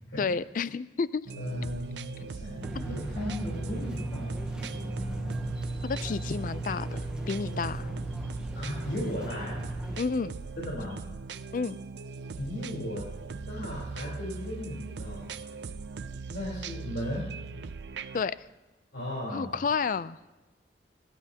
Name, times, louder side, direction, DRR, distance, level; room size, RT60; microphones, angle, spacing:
voice 1, 0.2-1.3 2.7-2.9 5.8-7.9 10.0-10.3 11.5-11.8 18.1-18.4 19.3-20.2, left 5 dB, 50° left, 17 dB, 0.4 m, -30 dB
sound 1, 1.3-18.2, right 4 dB, 75° right, 0.5 m, -40 dB
voice 2, 1.4-5.3 8.5-9.7 10.6-11.0 12.4-13.0 13.5-15.2 16.3-17.2 18.9-19.5, left 1 dB, 85° left, -6 dB, 3.8 m, -36 dB
sound 2, 2.6-10.0, right 1 dB, 5° right, 0.9 m, -36 dB
25.0 x 12.0 x 2.8 m, 1.1 s
head